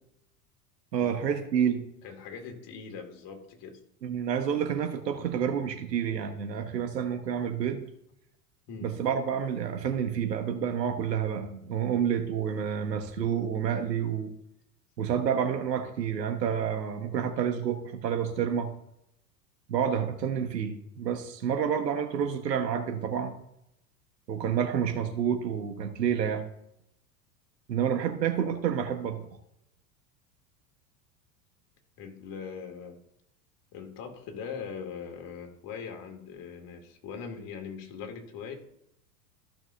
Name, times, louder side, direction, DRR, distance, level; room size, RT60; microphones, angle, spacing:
voice 1, 0.9-1.8 4.0-7.8 8.8-14.3 15.0-18.7 19.7-23.4 24.3-26.4 27.7-29.3, right 8 dB, 80° right, 6 dB, 1.4 m, -29 dB
voice 2, 2.0-3.8 8.7-9.0 32.0-33.0 33.7-38.5, left 6 dB, 45° left, 3 dB, 2.4 m, -41 dB
15.0 x 6.1 x 2.7 m, 0.78 s
hypercardioid pair, 90°, 49 cm